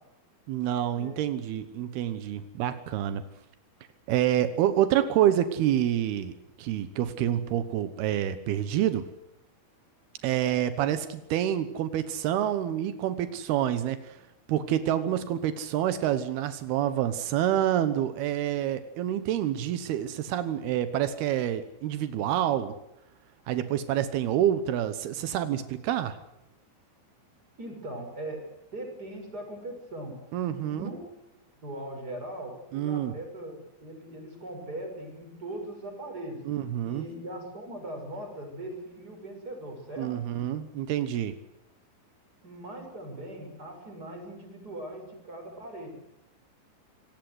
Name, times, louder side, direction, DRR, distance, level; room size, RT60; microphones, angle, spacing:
voice 1, 0.5-3.2 4.1-9.1 10.2-14.2 14.5-22.7 23.5-26.2 30.3-30.9 32.7-33.1 36.5-37.1 40.0-41.4, right 11 dB, 85° right, 11 dB, 3.1 m, -27 dB
voice 2, 27.6-28.4 28.7-30.2 30.6-31.2 31.6-36.4 36.8-40.1 42.4-45.9, right 1 dB, 25° right, 3 dB, 6.7 m, -40 dB
25.5 x 19.0 x 8.0 m, 0.84 s
omnidirectional pair, 4.4 m